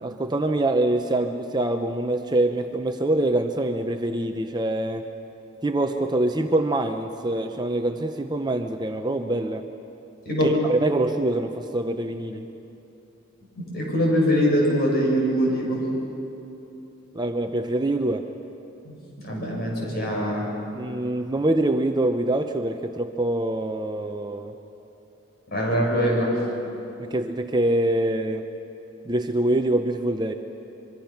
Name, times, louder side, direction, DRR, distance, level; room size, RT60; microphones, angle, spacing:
voice 1, 0.0-5.0 5.6-9.6 10.4-12.5 17.1-18.2 20.7-24.5 27.0-28.4 29.1-30.3, right 1 dB, 20° right, 6 dB, 0.7 m, -25 dB
voice 2, 10.2-10.6 13.6-15.9 18.8-18.9 19.2-20.5 25.5-26.3, equal, 50° left, -3 dB, 6.6 m, -23 dB
25.0 x 23.5 x 5.9 m, 2.9 s
head